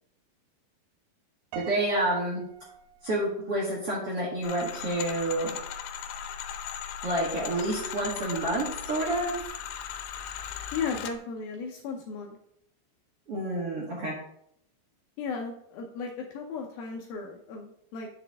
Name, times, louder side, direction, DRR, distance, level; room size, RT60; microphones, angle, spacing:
voice 1, 1.5-2.4 3.0-5.5 7.0-9.4 13.3-14.1, right 1 dB, 50° right, -5 dB, 1.8 m, -29 dB
Piano, 1.5-3.8, right 8 dB, 85° right, 3.1 m, -45 dB
sound 1, 4.4-11.2, left 8 dB, 90° left, 3.0 m, -38 dB
voice 2, 10.7-12.4 15.2-18.1, left 5 dB, 75° left, 1 dB, 2.3 m, -35 dB
9.0 x 6.7 x 3.6 m, 0.71 s
omnidirectional pair, 5.0 m